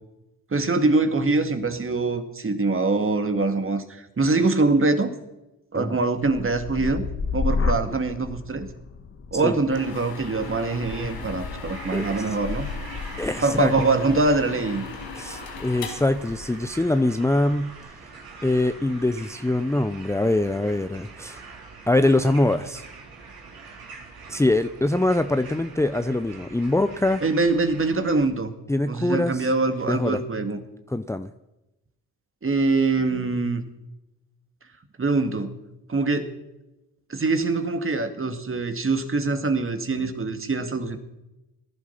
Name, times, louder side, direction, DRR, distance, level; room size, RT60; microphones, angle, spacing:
voice 1, 0.5-5.1 5.7-7.0 7.3-8.7 9.3-12.7 13.4-14.9 27.2-28.5 28.9-30.6 32.4-33.6 35.0-35.5 35.9-36.3 37.1-41.0, right 3 dB, 30° right, 8 dB, 2.3 m, -23 dB
sound 1, 6.1-14.0 14.4-14.9, left 4 dB, 35° left, 1.6 m, -32 dB
sound 2, 9.7-16.8, left 5 dB, 65° left, 4.8 m, -37 dB
sound 3, 10.4-28.2, right 4 dB, 60° right, 3.9 m, -44 dB
voice 2, 11.9-12.2 13.2-13.7 15.2-17.7 18.4-21.4 21.9-22.8 24.3-27.2 28.7-29.5 29.9-30.2 30.9-31.3, left 2 dB, 5° left, 10 dB, 0.8 m, -23 dB
19.0 x 11.0 x 5.9 m, 0.97 s
supercardioid pair, 55°, 40 cm